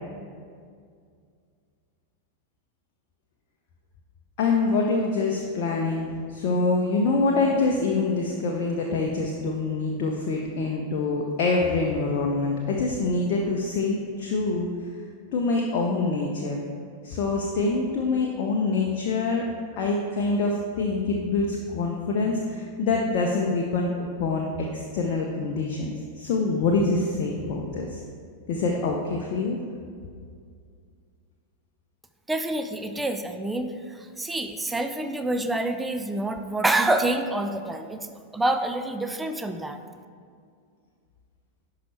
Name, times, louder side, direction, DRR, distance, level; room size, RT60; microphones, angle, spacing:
voice 1, 4.4-14.7 15.3-16.6 17.0-19.5 19.8-25.9 26.2-28.0 28.5-29.6, left 3 dB, 45° left, 0 dB, 0.7 m, -25 dB
voice 2, 32.3-38.1 38.3-39.8, right 2 dB, 10° right, 7 dB, 0.4 m, -27 dB
11.0 x 4.8 x 3.2 m, 2.2 s
figure-of-eight pair, 90°, 0 cm